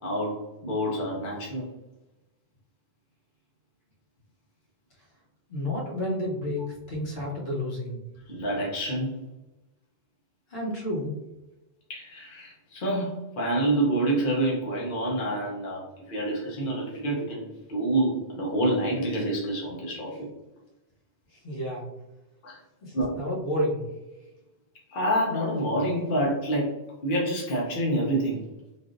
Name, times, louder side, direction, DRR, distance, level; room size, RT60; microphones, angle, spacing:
voice 1, 0.0-1.7 8.3-9.2 11.9-20.3 22.4-22.6 22.9-23.1 24.9-26.7 27.0-28.4, right 1 dB, 55° left, -3 dB, 0.9 m, -27 dB
voice 2, 5.5-8.0 10.5-11.1 21.3-21.9 22.8-23.8, left 1 dB, 70° left, -4 dB, 1.2 m, -30 dB
3.4 x 2.5 x 2.5 m, 0.99 s
omnidirectional pair, 1.1 m